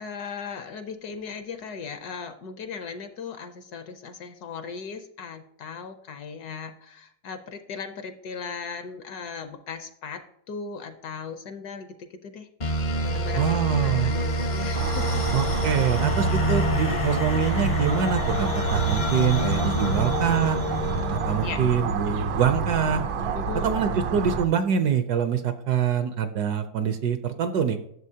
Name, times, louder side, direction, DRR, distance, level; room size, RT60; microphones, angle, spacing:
voice 1, 0.0-10.2 10.5-12.5 13.0-15.2 16.9-17.0 19.9-20.1 21.4-21.6 23.3-23.8, left 5 dB, 65° left, 8 dB, 1.1 m, -37 dB
sound 1, 12.6-22.0, equal, 40° left, 0.6 m, -27 dB
voice 2, 13.3-14.1 15.3-20.6 21.1-23.0 23.6-27.8, right 7 dB, 70° right, 9 dB, 1.0 m, -25 dB
sound 2, 14.7-24.5, right 5 dB, 85° right, 1.5 m, -29 dB
11.0 x 7.0 x 2.8 m, 0.74 s
omnidirectional pair, 2.1 m